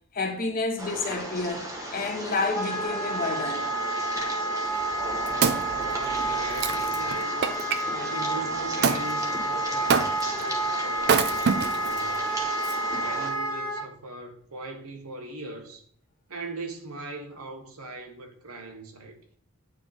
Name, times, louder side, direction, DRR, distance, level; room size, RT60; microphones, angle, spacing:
voice 1, 0.1-3.7, left 3 dB, 40° left, 1.0 m, -30 dB
sound 1, 0.8-13.3, right 1 dB, 15° right, 1.1 m, -37 dB
Wind instrument woodwind instrument, 2.5-13.8, right 1 dB, 20° left, 0.7 m, -29 dB
Wood, 4.8-7.8 8.8-9.1 9.9-10.4 11.0-12.0 12.6-12.7, right 6 dB, 50° right, 0.4 m, -26 dB
voice 2, 5.2-7.6 7.8-12.2 12.9-15.8 16.3-19.2, right 2 dB, 85° right, 1.2 m, -40 dB
8.9 x 3.0 x 4.0 m
head